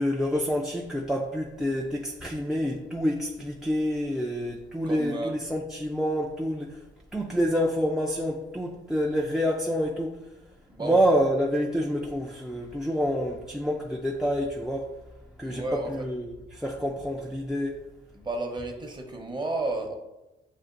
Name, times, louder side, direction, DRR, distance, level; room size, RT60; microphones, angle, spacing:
voice 1, 0.0-6.8 7.1-10.2 10.8-15.0 15.4-17.8, equal, 5° right, -2 dB, 0.4 m, -27 dB
voice 2, 4.8-5.3 10.7-11.0 15.4-16.0 18.1-19.9, right 2 dB, 20° right, 2 dB, 0.8 m, -32 dB
7.2 x 2.4 x 2.5 m, 0.98 s
cardioid pair, 90°, 20 cm